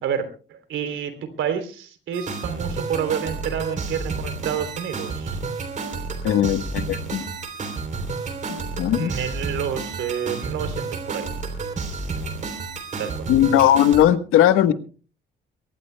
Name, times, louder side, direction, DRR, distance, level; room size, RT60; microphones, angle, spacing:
voice 1, 0.0-5.4 8.9-11.3 13.0-13.3, right 8 dB, 70° right, 9 dB, 3.2 m, -29 dB
sound 1, 2.1-14.0, right 4 dB, 35° right, 3.2 m, -30 dB
voice 2, 6.2-7.2 8.5-9.1 13.3-14.7, left 11 dB, 90° left, 11 dB, 1.2 m, -18 dB
23.0 x 19.0 x 2.2 m, 0.38 s
cardioid pair, 150°, 21 cm